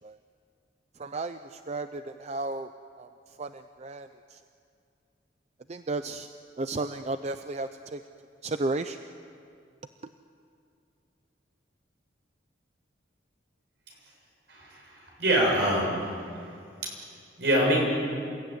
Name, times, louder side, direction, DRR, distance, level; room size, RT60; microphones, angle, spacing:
voice 1, 1.0-2.7 3.0-3.1 3.4-4.4 5.7-6.3 6.6-8.0 8.4-9.0, right 2 dB, 40° right, 9 dB, 0.6 m, -33 dB
voice 2, 14.5-16.2 16.8-16.9 17.4-17.9, right 1 dB, 70° right, -1 dB, 7.7 m, -25 dB
28.0 x 16.0 x 9.5 m, 2.4 s
head